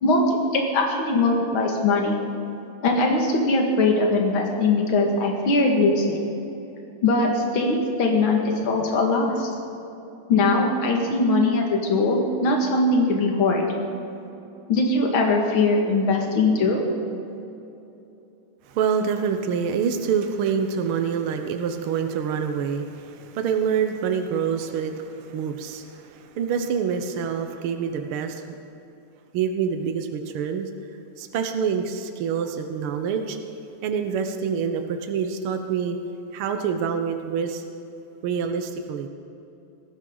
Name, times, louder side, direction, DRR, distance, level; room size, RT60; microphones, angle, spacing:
voice 1, 0.0-2.2 2.8-6.3 7.0-9.5 10.3-13.7 14.7-16.8, left 2 dB, 45° left, 1 dB, 2.5 m, -21 dB
voice 2, 18.7-28.4 29.3-30.7 31.2-33.4 33.8-36.0 36.3-37.6 38.2-39.1, right 7 dB, 75° right, 6 dB, 1.2 m, -26 dB
19.0 x 16.0 x 3.9 m, 2.9 s
omnidirectional pair, 3.5 m